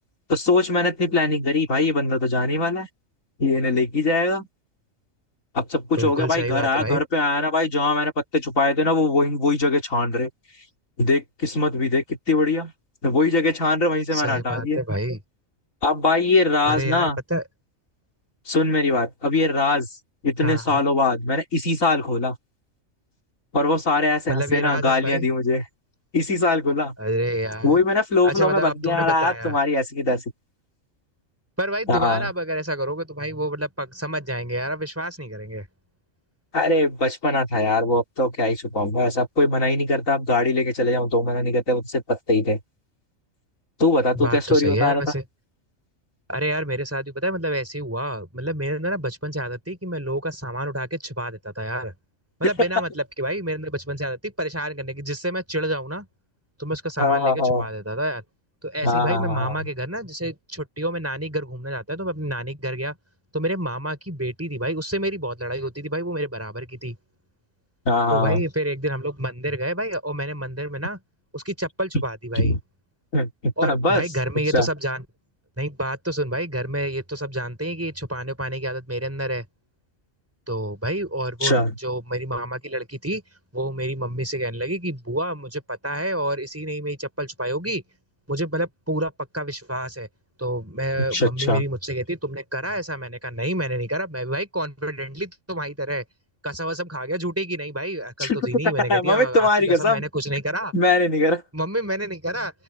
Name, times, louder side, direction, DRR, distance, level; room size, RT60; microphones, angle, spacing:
voice 1, 0.3-2.9 3.4-4.5 5.5-10.3 11.0-12.7 13.0-14.8 15.8-17.2 18.5-19.9 20.2-22.4 23.5-25.6 26.1-26.9 27.6-30.2 31.9-32.3 36.5-42.6 43.8-45.0 57.0-57.7 58.8-59.5 67.9-68.4 72.4-72.6 73.1-74.0 74.5-74.7 81.4-81.7 91.1-91.6 98.2-100.0 100.7-101.4, left 2 dB, 85° left, 4.2 m, -21 dB
voice 2, 6.0-7.0 14.1-15.2 16.6-17.4 20.4-20.8 24.3-25.3 27.0-27.8 28.2-29.5 31.6-35.7 44.1-45.2 46.3-51.9 52.4-56.1 56.6-58.2 58.6-63.0 63.3-67.0 68.1-71.0 71.3-72.5 73.6-75.0 75.6-79.5 80.5-83.2 83.5-87.8 88.3-90.1 90.4-96.0 96.4-100.7 101.5-102.5, right 1 dB, 10° right, 6.1 m, -28 dB
open air
omnidirectional pair, 1.3 m